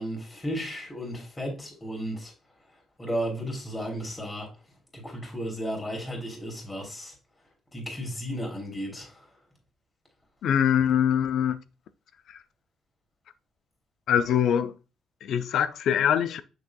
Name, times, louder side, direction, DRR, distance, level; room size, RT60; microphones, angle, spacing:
voice 1, 0.0-2.3 3.0-4.5 4.9-7.1 7.7-9.2, equal, 20° left, 3.2 m, -34 dB
voice 2, 10.4-11.6 14.1-14.7 15.2-16.4, left 9 dB, 75° left, 0.6 m, -23 dB
6.9 x 6.2 x 2.3 m
cardioid pair, 90°, 0 cm